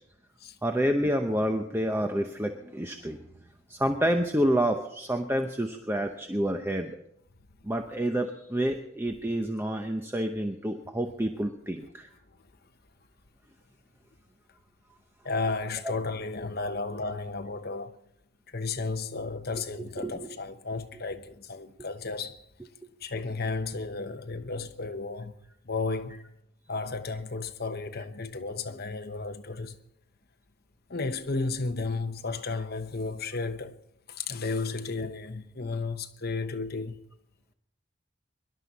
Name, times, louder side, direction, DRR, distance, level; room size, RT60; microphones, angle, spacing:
voice 1, 0.6-3.2 3.7-7.0 7.6-12.1 20.0-20.2, equal, 10° right, 0.8 m, -28 dB
voice 2, 15.2-18.0 18.5-22.4 23.0-25.3 25.6-26.2 26.7-29.8 30.9-33.8 34.1-37.1, left 3 dB, 50° left, 1.0 m, -33 dB
24.0 x 11.5 x 4.1 m
head